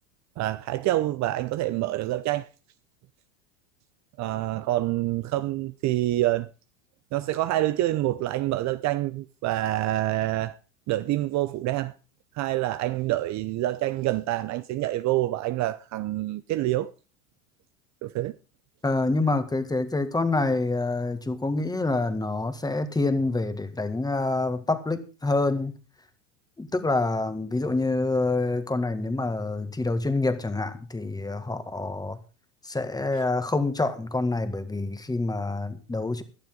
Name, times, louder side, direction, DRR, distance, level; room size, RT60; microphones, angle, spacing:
voice 1, 0.4-2.5 4.2-6.5 7.1-10.6 10.9-11.9 12.3-16.9 18.0-18.4 33.1-33.2, right 15 dB, 40° right, 0.7 m, -27 dB
voice 2, 18.8-25.7 26.6-32.2 32.6-36.2, left 2 dB, 10° left, 1.9 m, -27 dB
17.0 x 11.5 x 3.9 m
hypercardioid pair, 105°, 42 cm